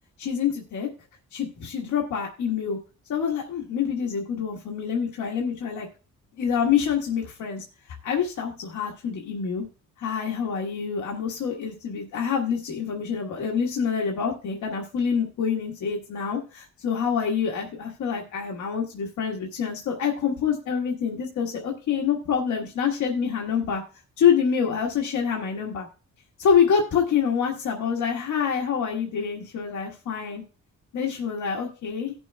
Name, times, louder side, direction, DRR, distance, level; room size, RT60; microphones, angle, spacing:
voice 1, 0.2-0.9 1.3-2.8 3.1-5.9 6.4-7.6 8.0-9.6 10.0-23.8 24.2-25.9 26.4-30.4 30.9-32.1, left 7 dB, 75° left, 0 dB, 1.5 m, -26 dB
18.0 x 6.1 x 2.3 m, 0.35 s
wide cardioid pair, 175°, 30 cm